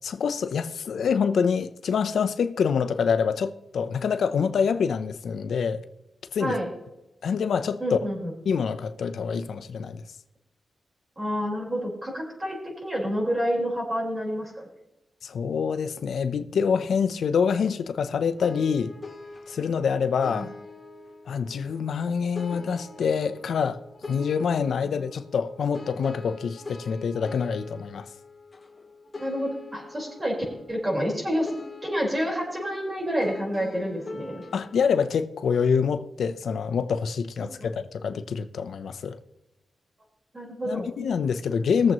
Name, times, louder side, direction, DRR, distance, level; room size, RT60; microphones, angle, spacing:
voice 1, 0.0-5.8 6.3-6.6 7.2-8.0 8.5-10.0 15.2-18.9 19.5-20.5 21.3-23.8 24.1-28.1 34.5-39.2 40.7-41.9, left 6 dB, 80° left, 0.6 m, -26 dB
voice 2, 7.8-8.3 11.2-14.5 20.3-20.5 29.2-31.5 31.8-34.4 37.4-37.7 40.3-40.9, equal, 25° right, 4.5 m, -29 dB
sound 1, 18.4-34.8, left 3 dB, 30° left, 2.3 m, -43 dB
20.5 x 7.5 x 3.0 m
wide cardioid pair, 105°, 0 cm